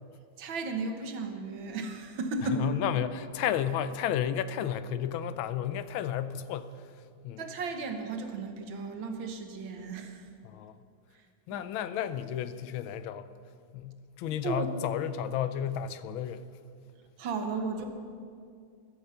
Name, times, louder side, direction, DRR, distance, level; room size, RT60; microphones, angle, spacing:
voice 1, 0.4-2.7 7.4-10.2 11.5-11.7 14.4-14.7 17.2-17.9, right 4 dB, 75° right, 5 dB, 1.9 m, -34 dB
voice 2, 2.5-6.7 7.2-7.5 10.4-10.8 11.5-13.3 13.7-16.5, left 10 dB, 85° left, 13 dB, 1.4 m, -32 dB
14.0 x 12.0 x 5.6 m, 2.3 s
omnidirectional pair, 2.2 m